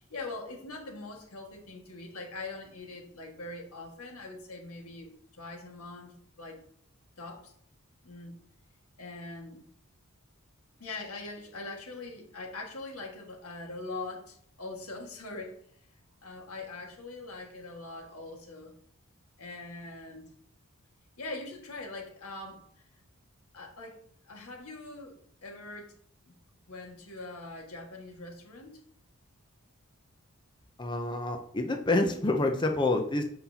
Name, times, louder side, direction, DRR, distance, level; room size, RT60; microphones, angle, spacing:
voice 1, 0.0-6.6 7.2-7.5 8.0-8.4 9.0-9.6 10.8-15.6 16.2-18.8 19.4-20.3 21.2-22.7 23.5-25.1 25.4-25.9 26.3-26.4 26.7-28.8, left 2 dB, 85° left, 1 dB, 1.7 m, -42 dB
voice 2, 30.8-33.2, left 2 dB, 20° left, 4 dB, 0.5 m, -27 dB
7.7 x 5.6 x 2.8 m, 0.63 s
head